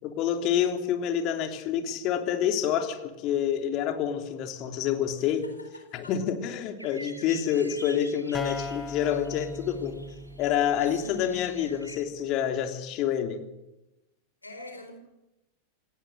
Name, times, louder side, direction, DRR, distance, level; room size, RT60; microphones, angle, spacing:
voice 1, 0.0-5.5 5.9-10.0 10.4-13.4, left 9 dB, 40° left, 5 dB, 3.2 m, -28 dB
voice 2, 5.3-6.1 11.0-11.4 14.4-14.9, left 2 dB, 85° left, 5 dB, 4.5 m, -44 dB
sound 1, 6.8-12.0, right 1 dB, 85° right, 2.2 m, -47 dB
sound 2, 8.3-12.0, left 2 dB, 10° left, 1.9 m, -40 dB
28.5 x 18.5 x 7.9 m, 0.97 s
figure-of-eight pair, 90°, 0 cm